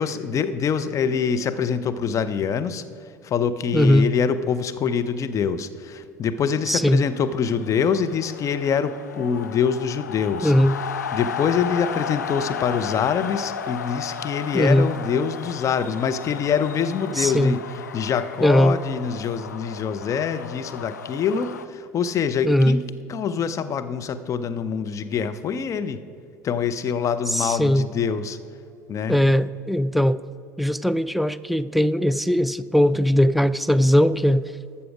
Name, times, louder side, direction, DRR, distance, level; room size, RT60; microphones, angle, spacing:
voice 1, 0.0-2.8 3.2-10.5 11.1-22.8 23.1-26.0 26.4-28.4 28.9-29.2, left 7 dB, 35° left, 11 dB, 0.6 m, -25 dB
voice 2, 3.7-4.1 6.7-7.0 10.4-10.8 14.5-14.9 17.2-17.6 18.4-18.8 22.4-22.8 27.3-27.9 29.1-30.2 30.6-34.5, equal, ahead, 15 dB, 0.3 m, -19 dB
sound 1, 6.9-21.7, left 7 dB, 80° left, 0.4 m, -34 dB
12.5 x 7.0 x 5.0 m, 2.6 s
figure-of-eight pair, 65°, 9 cm